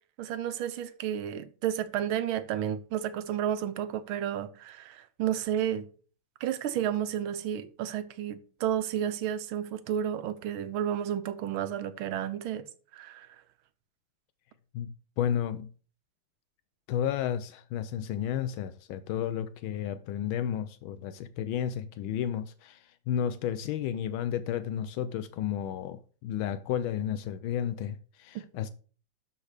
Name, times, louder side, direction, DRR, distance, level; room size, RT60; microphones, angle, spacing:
voice 1, 0.2-5.9 6.4-12.6 12.9-13.3 28.3-28.4, right 10 dB, 85° right, 1.6 m, -32 dB
voice 2, 14.7-15.7 16.9-28.7, left 9 dB, 80° left, 1.4 m, -32 dB
12.5 x 4.3 x 4.9 m
omnidirectional pair, 2.2 m